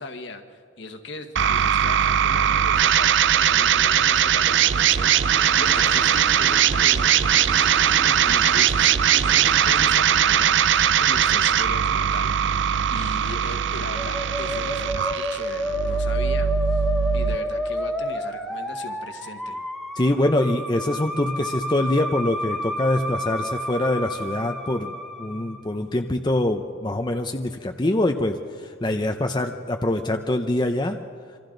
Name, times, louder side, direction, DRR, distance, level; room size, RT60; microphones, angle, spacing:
voice 1, 0.0-9.0 9.4-16.8 17.1-19.6, left 2 dB, 60° left, 5 dB, 1.6 m, -38 dB
sound 1, 1.4-17.4, right 9 dB, 60° right, 0.5 m, -20 dB
sound 2, 4.4-9.9, right 1 dB, 35° right, 1.4 m, -38 dB
Musical instrument, 13.9-25.7, equal, ahead, 1.4 m, -30 dB
voice 2, 19.9-24.9 25.2-31.0, left 1 dB, 20° left, 4 dB, 0.7 m, -24 dB
27.0 x 25.0 x 3.9 m, 2.3 s
head